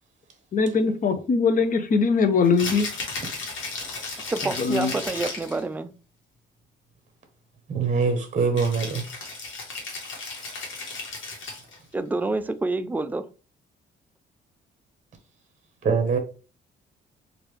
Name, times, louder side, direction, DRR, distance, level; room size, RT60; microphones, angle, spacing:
voice 1, 0.5-2.9 4.6-4.9, left 4 dB, 45° left, 0.6 m, -21 dB
Rattle (instrument), 2.4-5.6 8.6-11.8, left 3 dB, 75° left, 1.3 m, -35 dB
voice 2, 4.3-5.9 11.9-13.3, right 3 dB, 10° right, 0.3 m, -28 dB
voice 3, 7.7-9.0 15.8-16.2, right 5 dB, 35° right, 0.8 m, -23 dB
3.2 x 2.5 x 3.1 m
cardioid pair, 90°, 20 cm